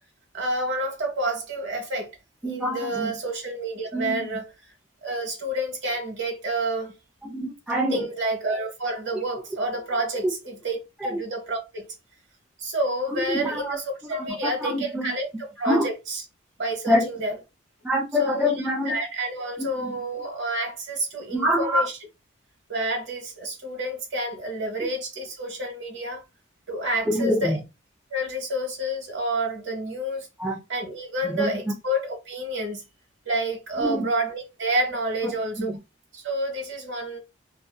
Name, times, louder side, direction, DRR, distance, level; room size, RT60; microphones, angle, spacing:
voice 1, 0.3-2.1 2.4-4.5 5.0-6.9 7.9-11.9 12.6-16.2 16.6-17.3 18.2-22.0 22.7-26.2 26.7-27.6 28.1-30.3 30.7-32.8 33.2-35.7 36.1-37.2, right 1 dB, 60° right, 1.0 m, -29 dB
voice 2, 2.4-3.1 3.9-4.2 7.2-8.1 11.1-11.2 13.1-13.8 14.0-15.1 15.7-15.9 16.9-17.1 17.8-19.0 19.6-19.9 21.3-21.9 27.1-27.6 30.4-30.6 31.2-31.7 33.8-34.1 35.6-35.7, equal, 5° right, 0.3 m, -25 dB
2.5 x 2.5 x 2.2 m
head